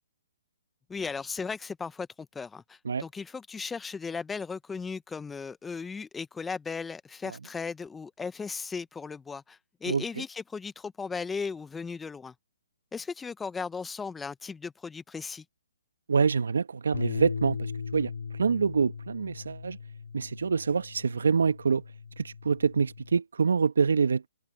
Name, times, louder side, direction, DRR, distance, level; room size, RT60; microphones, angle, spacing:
voice 1, 0.9-12.3 12.9-15.4, left 5 dB, 10° left, 0.9 m, -36 dB
voice 2, 16.1-18.1 18.4-19.8 20.1-21.8 22.2-24.3, right 5 dB, 75° right, 1.6 m, -26 dB
Bass guitar, 16.9-23.2, left 5 dB, 75° left, 4.6 m, -38 dB
hypercardioid pair, 140°, 0 cm